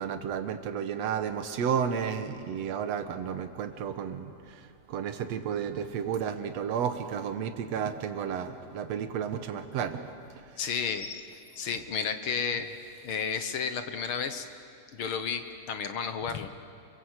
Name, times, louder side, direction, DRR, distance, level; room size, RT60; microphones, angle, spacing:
voice 1, 0.0-10.1, right 7 dB, 65° right, 8 dB, 2.3 m, -32 dB
voice 2, 10.6-11.3 11.5-12.7 13.0-14.5 14.9-16.5, left 6 dB, 60° left, 8 dB, 1.6 m, -32 dB
29.0 x 22.5 x 8.1 m, 2.3 s
omnidirectional pair, 3.4 m